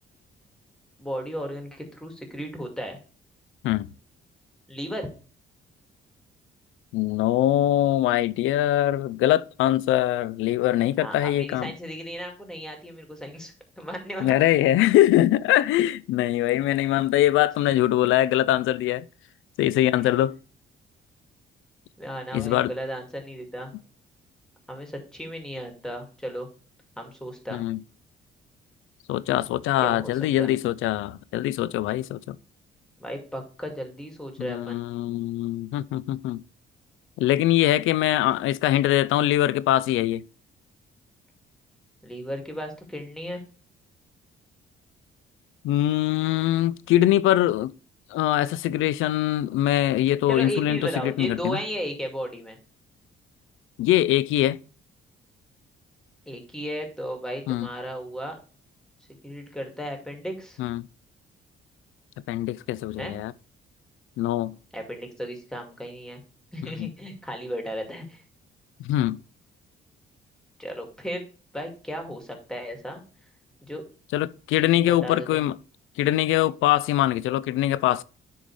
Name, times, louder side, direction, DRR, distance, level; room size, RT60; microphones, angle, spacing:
voice 1, 1.0-3.0 4.7-5.1 11.0-14.4 22.0-23.7 24.7-26.5 27.0-27.6 29.8-30.5 33.0-34.8 42.0-43.4 50.3-52.6 56.3-58.4 59.2-60.6 63.0-63.2 64.7-66.2 66.5-68.2 70.6-71.2 71.5-73.0 73.6-73.8 74.5-75.4, equal, 5° left, 2.1 m, -35 dB
voice 2, 6.9-11.7 14.2-19.1 19.6-20.4 22.3-22.7 27.5-27.8 29.1-32.4 34.4-36.4 37.2-40.2 45.6-47.7 48.1-51.6 53.8-54.6 57.5-57.7 60.6-60.9 62.3-63.3 64.2-64.6 66.6-66.9 68.9-69.2 74.1-75.6 76.0-78.0, left 14 dB, 85° left, 0.4 m, -23 dB
10.0 x 3.7 x 3.2 m
cardioid pair, 90°, 20 cm